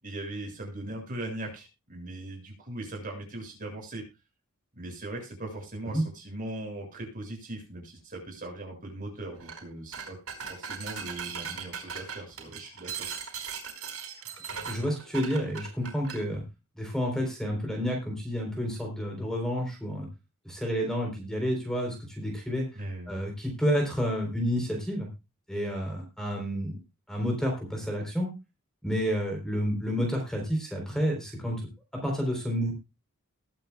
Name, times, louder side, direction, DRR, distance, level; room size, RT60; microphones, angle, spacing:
voice 1, 0.0-4.0 4.8-13.1 22.7-23.1, right 1 dB, 40° right, 1 dB, 6.6 m, -39 dB
sound 1, 9.4-9.6 9.9-16.2, right 6 dB, 80° right, 4.4 m, -38 dB
voice 2, 14.5-16.4 16.8-20.1 20.4-22.7 23.1-25.1 25.5-26.8 27.1-28.3 28.8-31.6 31.9-32.7, equal, 5° left, 1 dB, 3.8 m, -30 dB
21.0 x 8.9 x 2.4 m, 0.27 s
head